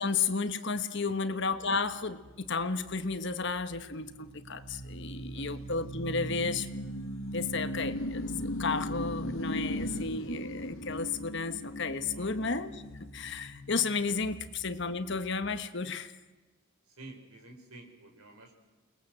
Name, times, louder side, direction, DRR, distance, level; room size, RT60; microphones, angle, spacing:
voice 1, 0.0-6.7 7.3-12.8 13.1-16.1, left 4 dB, 55° left, 10 dB, 1.4 m, -33 dB
sound 1, 1.5-15.7, equal, 70° left, 2.1 m, -39 dB
voice 2, 17.0-18.5, right 2 dB, 85° right, 3 dB, 5.1 m, -50 dB
29.0 x 21.0 x 7.7 m, 1.2 s
head